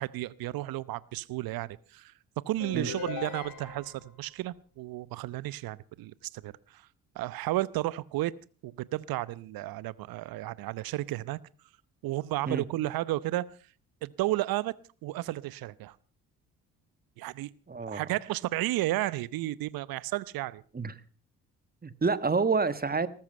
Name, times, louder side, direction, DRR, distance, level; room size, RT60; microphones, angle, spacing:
voice 1, 0.0-2.1 2.5-6.1 6.4-6.8 7.1-8.3 8.6-11.4 12.0-13.5 14.0-14.7 15.0-15.9 17.2-17.5 17.9-20.6, right 16 dB, 60° right, 21 dB, 0.9 m, -32 dB
sound 1, 2.6-4.1, left 6 dB, 50° left, 3.4 m, -39 dB
voice 2, 17.7-18.0 20.7-20.9 21.8-23.1, right 4 dB, 25° right, 15 dB, 1.4 m, -28 dB
19.5 x 13.5 x 5.4 m, 0.39 s
hypercardioid pair, 50°, 40 cm